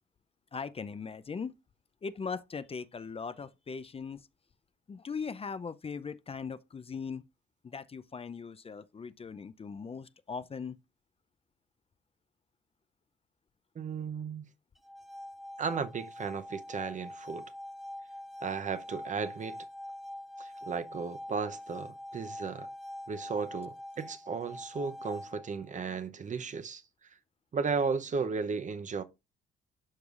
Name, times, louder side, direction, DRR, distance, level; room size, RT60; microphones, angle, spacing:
voice 1, 0.5-1.5 2.0-4.3 4.9-7.2 7.6-10.8, left 5 dB, 30° left, 0.5 m, -39 dB
voice 2, 13.8-14.5 15.6-17.4 18.4-19.6 20.4-22.7 23.1-27.1 27.5-29.0, right 5 dB, 40° right, 0.7 m, -35 dB
sound 1, 14.8-25.7, left 1 dB, ahead, 0.8 m, -44 dB
12.0 x 4.7 x 2.5 m
cardioid pair, 90°, 20 cm